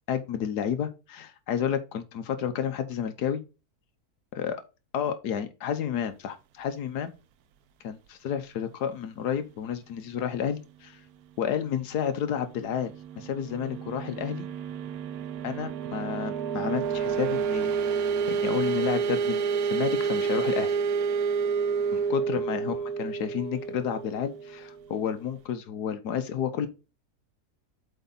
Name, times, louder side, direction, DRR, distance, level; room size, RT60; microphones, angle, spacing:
voice 1, 0.1-3.4 4.3-4.6 4.9-7.1 7.8-11.0 11.4-14.5 15.4-19.4 19.7-20.8 21.9-26.7, left 8 dB, 85° left, 1.5 m, -31 dB
sound 1, 12.5-25.0, right 6 dB, 75° right, 1.1 m, -29 dB
8.0 x 4.7 x 4.0 m
omnidirectional pair, 1.7 m